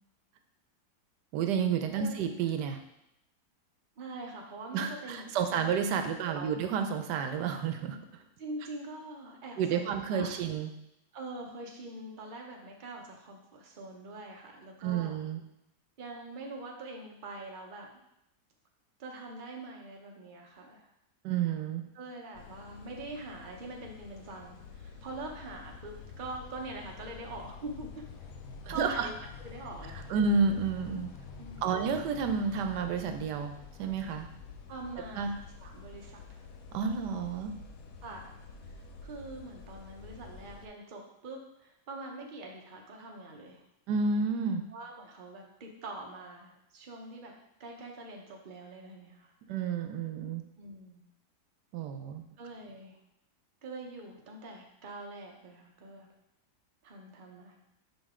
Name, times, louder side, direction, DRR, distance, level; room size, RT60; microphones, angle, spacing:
voice 1, 1.3-2.8 4.7-8.0 9.6-10.7 14.8-15.4 21.2-21.8 28.7-29.1 30.1-31.1 31.6-33.5 33.8-34.3 35.2-35.3 36.7-37.5 43.9-44.6 49.5-50.4 51.7-52.3, right 6 dB, 85° right, 7 dB, 1.2 m, -30 dB
voice 2, 4.0-5.7 6.0-6.6 8.4-10.3 11.1-15.2 16.0-17.9 19.0-20.9 21.9-28.1 28.7-30.1 31.4-32.1 34.7-36.4 38.0-38.3 39.0-43.6 44.7-47.3 47.6-49.3 50.6-51.1 52.4-53.0 53.6-56.1 56.8-57.6, right 2 dB, 40° right, 1 dB, 0.9 m, -44 dB
sound 1, 22.3-40.7, left 5 dB, 65° left, 1.0 m, -48 dB
5.5 x 5.2 x 3.6 m, 0.82 s
omnidirectional pair, 1.8 m